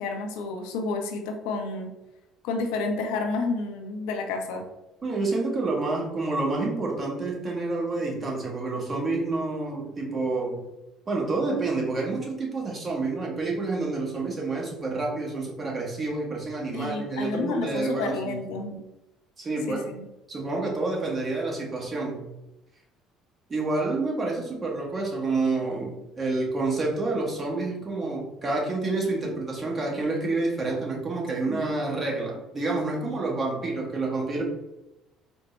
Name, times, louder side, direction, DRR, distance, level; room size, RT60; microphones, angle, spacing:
voice 1, 0.0-1.9 2.4-4.6 16.7-18.8 19.7-20.0 31.5-31.8, left 3 dB, 65° left, 4 dB, 0.4 m, -30 dB
voice 2, 5.0-10.7 11.1-18.4 19.4-19.9 20.3-22.2 23.5-34.4, right 3 dB, 30° right, -2 dB, 1.1 m, -28 dB
4.2 x 2.0 x 3.0 m, 0.93 s
figure-of-eight pair, 55°, 0 cm